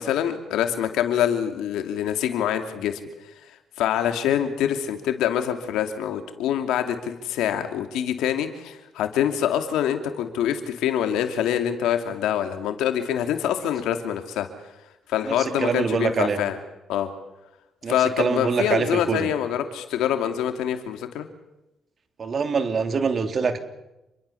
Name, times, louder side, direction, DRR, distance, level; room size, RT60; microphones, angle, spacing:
voice 1, 0.0-3.0 3.8-14.5 15.1-16.6 16.9-17.1 17.9-21.3, left 10 dB, 90° left, 7 dB, 2.8 m, -25 dB
voice 2, 15.2-16.4 17.8-19.3 22.2-23.6, right 5 dB, 45° right, 8 dB, 3.0 m, -24 dB
28.5 x 22.5 x 7.1 m, 0.95 s
cardioid pair, 90°, 0 cm